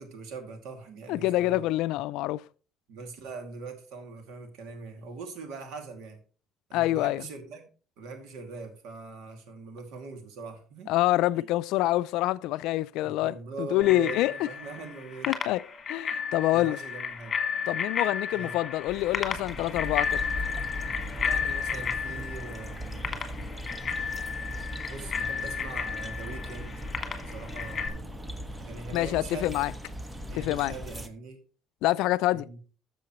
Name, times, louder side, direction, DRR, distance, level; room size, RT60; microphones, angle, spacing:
voice 1, 0.0-1.7 2.9-6.2 6.7-7.6 8.0-10.9 11.3-11.5 13.0-15.3 16.5-17.4 18.3-18.6 21.2-23.2 24.5-24.6 24.9-26.9 27.2-28.1 28.6-29.7 30.3-31.4 32.3-32.6, right 4 dB, 75° right, 2.3 m, -42 dB
voice 2, 1.1-2.4 6.7-7.2 10.9-14.5 15.3-16.8 17.7-20.2 28.9-29.7 30.4-30.7 31.8-32.5, left 16 dB, 80° left, 0.3 m, -26 dB
Bicycle bell, 13.8-27.9, left 6 dB, 35° left, 1.8 m, -33 dB
sound 1, 18.9-31.1, equal, 10° right, 0.9 m, -38 dB
13.5 x 6.9 x 3.1 m
cardioid pair, 110°, 0 cm